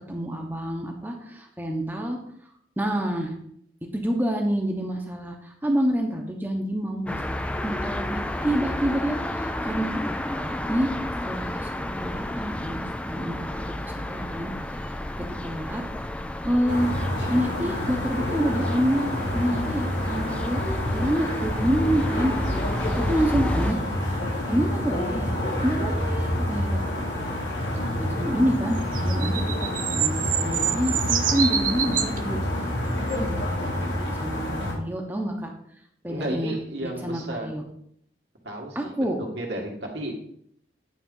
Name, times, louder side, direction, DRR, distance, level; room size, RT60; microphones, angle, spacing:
voice 1, 0.1-2.2 2.8-3.3 3.9-7.2 7.6-10.9 11.2-14.5 15.2-15.8 16.4-16.9 17.3-22.3 22.9-23.8 24.5-25.4 25.6-26.8 28.0-32.4 33.0-35.5 36.0-36.5 36.8-37.6 38.7-39.2, equal, 10° right, 2 dB, 0.9 m, -27 dB
sound 1, 7.1-23.7, left 1 dB, 5° left, 0.3 m, -32 dB
sound 2, 16.7-34.7, left 1 dB, 85° left, 2.6 m, -28 dB
sound 3, 28.8-32.2 33.1-33.2, right 9 dB, 45° right, 0.5 m, -26 dB
voice 2, 36.1-37.5 38.4-40.1, right 1 dB, 75° right, 0 dB, 1.9 m, -33 dB
9.5 x 3.8 x 5.4 m, 0.68 s
head